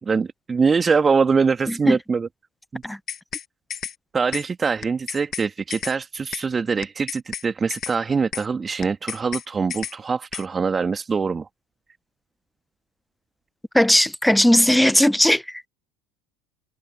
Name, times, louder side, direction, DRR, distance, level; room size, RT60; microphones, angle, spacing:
voice 1, 0.0-2.3 2.7-2.8 4.1-11.5, right 5 dB, 25° right, 2.3 m, -23 dB
voice 2, 1.7-2.0 2.8-3.0 13.7-15.6, left 1 dB, 5° left, 1.2 m, -18 dB
sound 1, 2.8-3.5 3.7-4.0 4.3-4.5 4.8-5.5 5.7-6.0 6.3-6.5 6.8-7.5 7.7-8.0 8.3-8.5 8.8-9.5 9.7-10.0 10.3-10.5, left 8 dB, 40° left, 2.2 m, -32 dB
hypercardioid pair, 70°, 0 cm